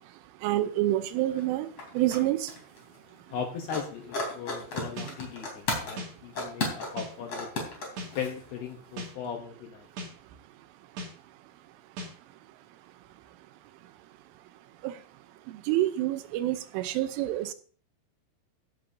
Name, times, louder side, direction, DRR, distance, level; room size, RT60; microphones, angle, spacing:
voice 1, 0.4-1.7 1.9-2.5 14.8-14.9 15.7-17.5, right 14 dB, 85° right, 11 dB, 3.3 m, -27 dB
sound 1, 1.0-1.1 1.3-2.2 2.5-3.4 3.7-6.0 6.3-8.7 9.0-9.1, left 2 dB, 35° left, 4.1 m, -34 dB
voice 2, 3.3-7.5 8.2-9.9, left 7 dB, 75° left, 4 dB, 2.4 m, -38 dB
sound 2, 5.0-5.1 6.0-6.1 7.0-7.1 8.0-8.1 9.0-9.1 10.0-10.1 11.0-11.1 12.0-12.1, equal, 65° right, 4.3 m, -37 dB
15.5 x 10.0 x 2.7 m, 0.43 s
omnidirectional pair, 5.7 m